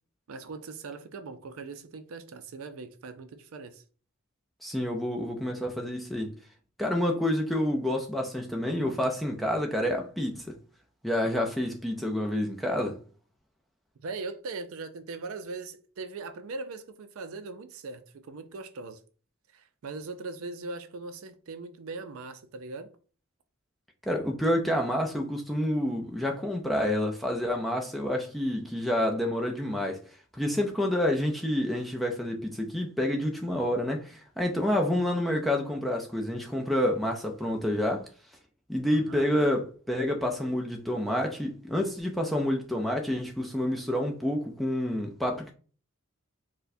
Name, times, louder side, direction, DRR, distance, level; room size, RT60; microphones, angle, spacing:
voice 1, 0.3-3.8 14.0-19.0 19.5-22.9 38.9-39.3, right 3 dB, 70° right, 0.4 m, -40 dB
voice 2, 4.6-6.4 6.8-10.6 11.0-13.0 24.0-30.0 30.3-38.1 38.7-45.5, left 1 dB, ahead, 0.4 m, -28 dB
4.4 x 2.1 x 2.6 m
head